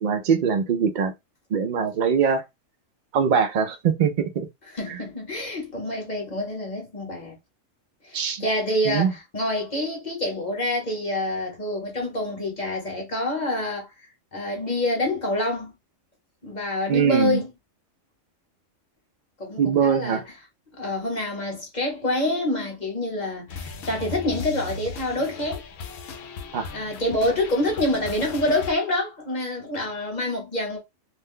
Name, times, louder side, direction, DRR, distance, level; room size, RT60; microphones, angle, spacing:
voice 1, 0.0-1.1 1.5-2.4 3.1-4.5 4.9-5.0 8.1-8.4 8.8-9.1 16.9-17.4 19.6-20.2 26.5-26.7, right 7 dB, 60° right, 0.5 m, -22 dB
voice 2, 4.7-7.4 8.0-13.9 14.3-15.7 16.4-17.5 19.4-20.3 20.8-25.6 26.7-30.8, left 1 dB, 40° left, 1.0 m, -27 dB
sound 1, 23.5-28.7, left 4 dB, 65° left, 0.8 m, -37 dB
2.5 x 2.1 x 3.6 m
omnidirectional pair, 1.3 m